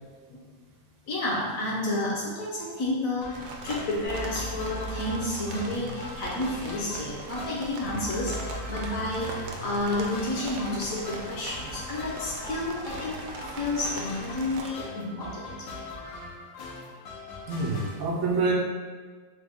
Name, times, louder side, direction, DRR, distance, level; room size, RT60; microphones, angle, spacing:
voice 1, 1.1-13.2 13.6-15.5 17.4-17.5, left 2 dB, 60° left, -4 dB, 1.0 m, -31 dB
sound 1, 3.2-18.0, left 2 dB, 85° left, 1.4 m, -41 dB
sound 2, 3.3-14.7, right 3 dB, 90° right, 1.3 m, -41 dB
sound 3, 4.0-6.0 7.8-9.8 11.7-11.8, right 1 dB, 40° left, 0.6 m, -39 dB
voice 2, 17.5-18.5, right 3 dB, 70° right, -1 dB, 1.1 m, -26 dB
4.0 x 2.2 x 3.4 m, 1.5 s
omnidirectional pair, 1.9 m